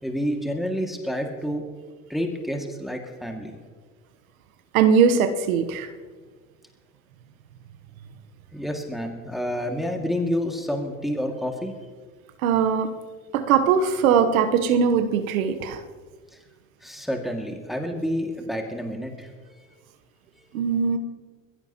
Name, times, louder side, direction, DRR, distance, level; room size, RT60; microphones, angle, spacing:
voice 1, 0.0-1.6 2.1-3.6 8.5-11.7 16.8-19.3, equal, ahead, 2 dB, 2.2 m, -29 dB
voice 2, 4.7-5.9 12.4-12.9 13.3-15.8 20.5-21.0, right 6 dB, 80° right, 9 dB, 1.1 m, -20 dB
22.0 x 15.5 x 3.0 m, 1.5 s
hypercardioid pair, 70°, 41 cm